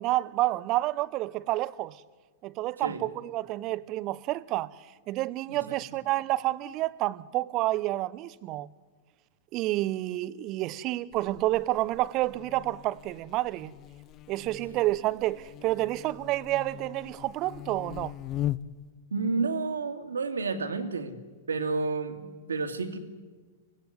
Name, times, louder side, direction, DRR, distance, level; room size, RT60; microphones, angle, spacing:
voice 1, 0.0-2.0 2.4-4.8 5.1-8.7 9.5-13.7 14.3-18.1, right 17 dB, 40° right, 0.9 m, -29 dB
voice 2, 5.5-6.0 19.1-21.2 21.5-23.0, right 4 dB, 75° right, 2.3 m, -31 dB
Buzz, 11.1-18.9, left 13 dB, 35° left, 0.7 m, -40 dB
24.5 x 17.0 x 9.6 m
figure-of-eight pair, 100°, 0 cm